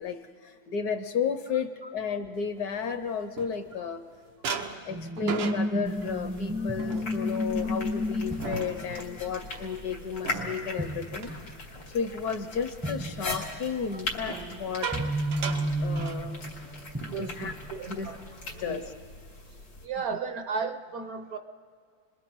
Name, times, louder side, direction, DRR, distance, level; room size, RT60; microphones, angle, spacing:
voice 1, 0.0-4.0 4.8-11.5 11.9-14.9 15.8-16.4 17.1-17.5 17.9-18.1 18.6-18.9, left 6 dB, 60° left, 10 dB, 1.2 m, -33 dB
sound 1, 2.6-4.0 4.4-12.3 12.6-12.9 14.1-16.7 17.0-17.2 17.5-17.8 18.3-19.0, right 6 dB, 85° right, 1.8 m, -39 dB
sound 2, 4.9-10.5 10.8-11.5 11.8-11.9 12.8-13.6 14.4-17.7 18.5-18.9, equal, 10° right, 0.6 m, -32 dB
sound 3, 5.9-19.9, left 2 dB, 90° left, 3.9 m, -40 dB
voice 2, 17.1-18.2 18.7-18.9 19.8-21.4, right 5 dB, 60° right, 8 dB, 1.1 m, -35 dB
30.0 x 22.0 x 4.6 m, 2.2 s
omnidirectional pair, 2.0 m